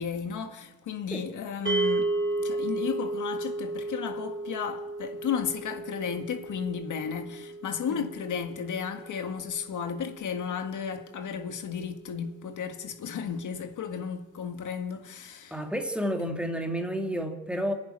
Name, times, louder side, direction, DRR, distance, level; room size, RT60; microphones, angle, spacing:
voice 1, 0.0-15.6, left 7 dB, 60° left, 1.8 m, -34 dB
sound 1, 1.7-12.0, right 2 dB, 35° right, 3.2 m, -34 dB
voice 2, 15.5-17.7, equal, 5° right, 2.4 m, -31 dB
27.0 x 10.5 x 9.9 m
cardioid pair, 115°, 33 cm